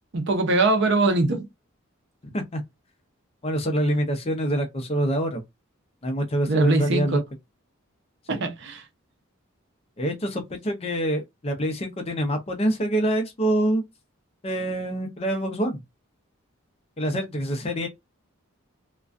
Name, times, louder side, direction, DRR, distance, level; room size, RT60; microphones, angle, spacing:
voice 1, 0.1-1.5 6.5-7.1 8.3-8.8, right 2 dB, 55° right, 0.6 m, -22 dB
voice 2, 2.2-2.6 3.4-5.4 6.0-7.2 8.3-8.4 10.0-13.8 14.4-15.8 17.0-17.9, right 1 dB, 30° left, 0.5 m, -25 dB
2.4 x 2.2 x 2.4 m
head